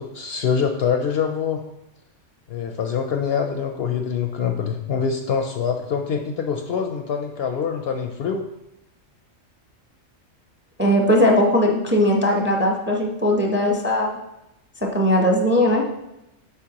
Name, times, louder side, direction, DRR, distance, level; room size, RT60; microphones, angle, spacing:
voice 1, 0.0-1.6 2.5-8.4, left 6 dB, 65° left, 4 dB, 0.7 m, -25 dB
voice 2, 10.8-14.1 14.8-15.8, left 1 dB, 10° right, 0 dB, 0.6 m, -19 dB
8.2 x 5.4 x 2.9 m, 0.88 s
omnidirectional pair, 1.3 m